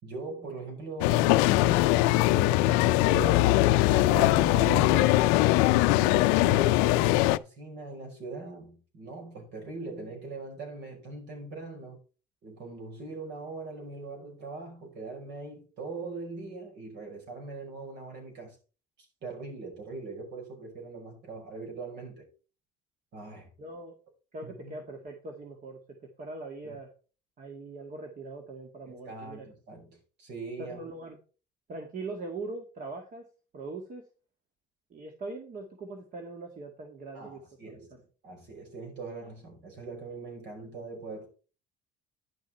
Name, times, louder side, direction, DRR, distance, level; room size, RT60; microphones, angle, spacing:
voice 1, 0.0-5.4 5.8-12.0 12.4-18.6 19.2-22.3 23.1-23.5 24.4-24.8 26.6-26.8 28.9-30.8 37.1-37.9 38.2-41.3, right 3 dB, 65° right, 5.5 m, -41 dB
sound 1, 1.0-7.4, left 17 dB, 90° left, 0.4 m, -22 dB
voice 2, 23.6-24.0 24.3-25.8 26.2-26.9 27.4-29.5 30.6-31.2 31.7-33.3 33.5-34.1 34.9-37.4 37.7-37.8, right 3 dB, 45° right, 2.1 m, -41 dB
10.5 x 6.4 x 4.3 m
supercardioid pair, 95°, 19 cm